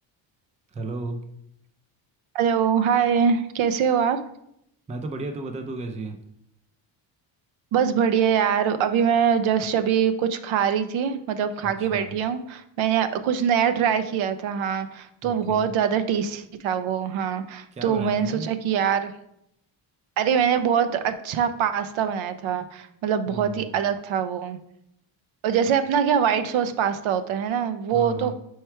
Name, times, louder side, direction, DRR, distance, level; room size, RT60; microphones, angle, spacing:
voice 1, 0.7-1.2 4.9-6.2 11.6-12.1 15.2-15.7 17.7-18.5 23.3-23.8 27.9-28.3, right 3 dB, 15° right, 6 dB, 0.4 m, -34 dB
voice 2, 2.3-4.2 7.7-19.1 20.2-24.6 25.4-28.3, right 8 dB, 75° right, 10 dB, 0.7 m, -23 dB
4.7 x 4.6 x 4.4 m, 0.76 s
cardioid pair, 140°, 48 cm